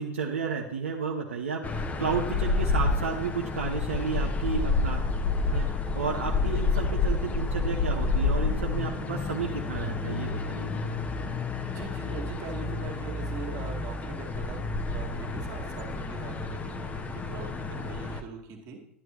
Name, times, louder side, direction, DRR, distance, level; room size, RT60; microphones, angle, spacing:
voice 1, 0.0-5.0 5.5-11.0, right 5 dB, 80° right, 0 dB, 0.9 m, -32 dB
sound 1, 1.6-18.2, left 4 dB, 20° left, 0.9 m, -29 dB
voice 2, 11.7-14.6 14.9-18.8, right 5 dB, 45° right, 1 dB, 2.0 m, -41 dB
10.5 x 9.8 x 3.0 m, 0.75 s
figure-of-eight pair, 85°, 7 cm